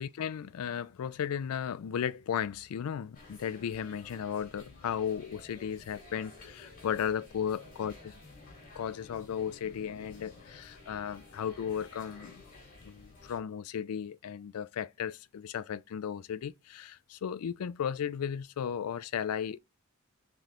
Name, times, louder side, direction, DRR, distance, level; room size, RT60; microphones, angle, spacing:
voice 1, 0.0-7.9 8.7-12.4 12.8-19.6, left 8 dB, 80° left, 0.4 m, -35 dB
sound 1, 3.1-13.4, left 3 dB, 40° left, 1.3 m, -53 dB
3.7 x 3.3 x 2.8 m
head